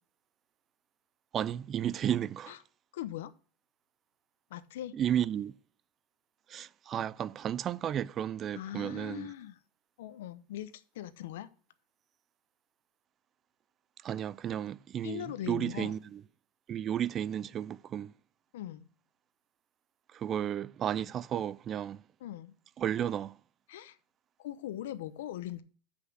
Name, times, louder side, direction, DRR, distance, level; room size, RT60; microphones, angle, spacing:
voice 1, 1.3-2.5 4.9-5.5 6.5-9.3 14.0-16.2 16.7-18.1 20.1-22.0 22.8-23.3, right 10 dB, 30° right, 0.3 m, -33 dB
voice 2, 2.9-3.3 4.5-4.9 8.5-9.6 10.0-11.5 15.0-16.0 18.5-18.8 22.2-22.5 23.7-23.9 24.4-25.6, left 13 dB, 85° left, 0.8 m, -40 dB
8.0 x 5.7 x 6.2 m
supercardioid pair, 145°, 0 cm